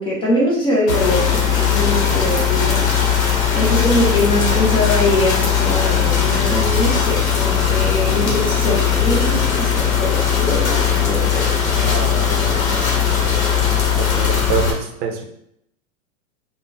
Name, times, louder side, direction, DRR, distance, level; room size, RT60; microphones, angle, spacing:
voice 1, 0.0-2.8 3.5-11.5, left 1 dB, 15° left, -6 dB, 0.4 m, -22 dB
sound 1, 0.9-14.7, left 7 dB, 85° left, 0.8 m, -18 dB
voice 2, 8.0-8.4 11.8-12.6 14.0-15.2, right 6 dB, 50° right, 4 dB, 0.6 m, -27 dB
3.4 x 2.1 x 2.5 m, 0.74 s
hypercardioid pair, 125°, 40 cm